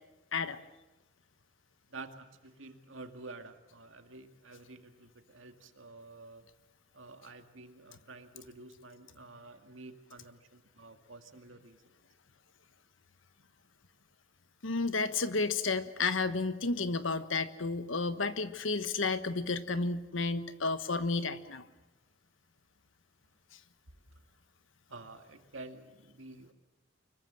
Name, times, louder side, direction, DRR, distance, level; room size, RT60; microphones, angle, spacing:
voice 1, 1.9-6.4 6.9-12.0 24.9-26.5, right 3 dB, 75° right, 7 dB, 2.2 m, -50 dB
voice 2, 14.6-21.6, left 3 dB, 80° left, 12 dB, 1.3 m, -32 dB
24.5 x 22.5 x 7.6 m, 1.0 s
head